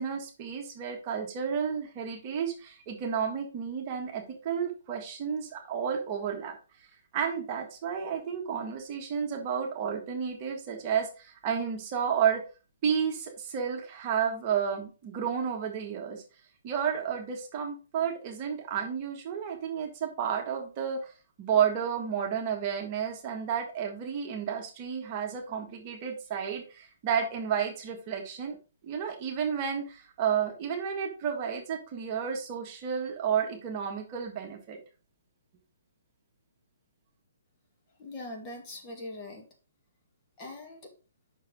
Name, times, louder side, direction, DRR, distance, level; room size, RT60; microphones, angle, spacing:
voice 1, 0.0-6.5 7.1-12.4 12.8-16.2 16.6-21.1 21.4-28.6 28.8-34.8, right 7 dB, 35° right, 2 dB, 1.6 m, -31 dB
voice 2, 38.0-39.5 40.4-40.9, left 2 dB, 25° left, 1 dB, 2.0 m, -41 dB
6.0 x 4.6 x 5.2 m, 0.33 s
hypercardioid pair, 145°, 0 cm